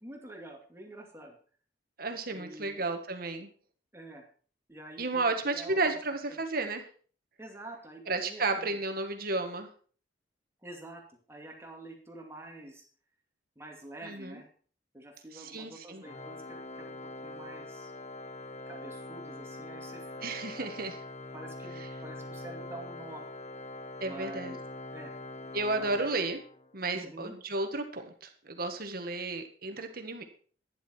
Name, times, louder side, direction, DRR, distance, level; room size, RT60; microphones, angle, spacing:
voice 1, 0.0-1.4 2.3-2.8 3.9-4.3 4.7-6.0 6.3-6.4 7.4-8.8 10.6-12.8 13.6-14.5 14.9-17.9 18.7-20.2 20.6-20.7 21.3-23.2 24.0-24.6 24.9-25.1 25.8-26.1 26.9-27.3, right 1 dB, 15° right, 1 dB, 2.4 m, -47 dB
voice 2, 2.0-3.5 5.0-6.8 8.1-9.7 14.0-14.4 15.3-16.0 20.2-21.0 21.8-21.9 24.0-24.5 25.5-26.4 26.7-30.2, right 3 dB, 55° right, 6 dB, 1.8 m, -33 dB
Organ, 16.0-26.8, left 2 dB, 35° left, 0.8 m, -43 dB
12.0 x 10.5 x 4.6 m, 0.43 s
head